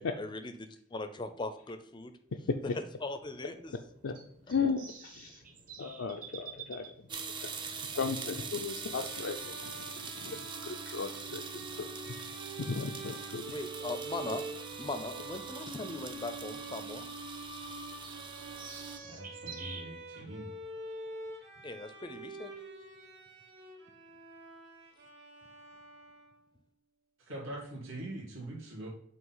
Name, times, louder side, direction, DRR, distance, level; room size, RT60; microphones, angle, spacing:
voice 1, 0.2-2.1 3.0-3.7 13.5-14.4 14.8-17.1 21.6-22.5, left 2 dB, 25° left, 9 dB, 0.5 m, -40 dB
sound 1, 2.1-19.8, right 6 dB, 40° right, 1.2 m, -54 dB
voice 2, 4.5-5.3 5.8-6.8 7.4-7.5 7.9-9.7 10.2-11.5 11.8-11.9 12.2-12.3 12.6-13.5, left 5 dB, 75° left, 3 dB, 0.5 m, -35 dB
sound 2, 7.1-19.0, right 5 dB, 25° right, 0.5 m, -42 dB
Bowed string instrument, 8.7-26.5, right 2 dB, 60° right, 2.2 m, -47 dB
voice 3, 19.0-20.5 27.3-28.9, right 1 dB, 75° right, -5 dB, 2.1 m, -43 dB
7.9 x 2.9 x 5.6 m, 0.69 s
head